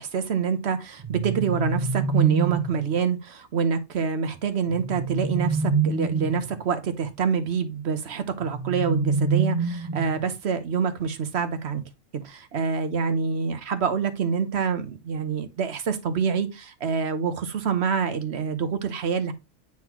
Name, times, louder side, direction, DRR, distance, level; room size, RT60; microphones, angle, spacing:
voice 1, 0.0-11.8 12.1-19.3, right 6 dB, 60° right, 1.1 m, -26 dB
sound 1, 1.0-2.8 4.7-6.6 8.4-10.3, right 4 dB, 30° right, 0.8 m, -26 dB
8.9 x 3.9 x 3.0 m
omnidirectional pair, 1.3 m